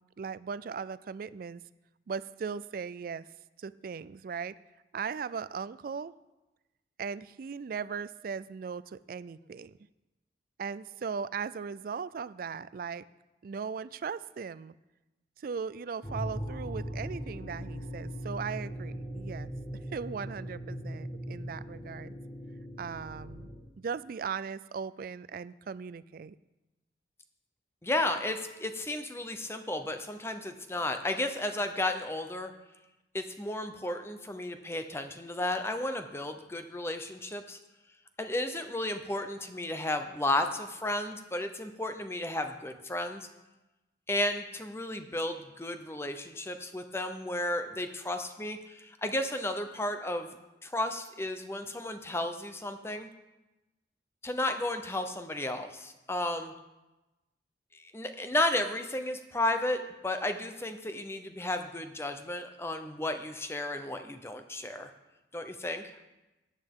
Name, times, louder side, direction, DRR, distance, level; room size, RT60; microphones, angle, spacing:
voice 1, 0.0-1.6 2.1-3.3 3.6-4.5 4.9-6.1 7.0-9.8 10.6-13.0 13.4-14.7 15.4-19.5 19.9-22.2 22.8-23.5 23.8-26.4, right 6 dB, 50° right, 17 dB, 0.3 m, -38 dB
sound 1, 16.0-23.6, equal, 30° left, 1.4 m, -39 dB
voice 2, 27.8-32.5 33.1-37.6 38.2-43.3 44.1-50.3 50.6-53.1 54.2-56.5 57.7-64.9 65.3-66.0, left 1 dB, 15° left, 7 dB, 0.6 m, -33 dB
14.5 x 9.2 x 3.7 m, 1.0 s
head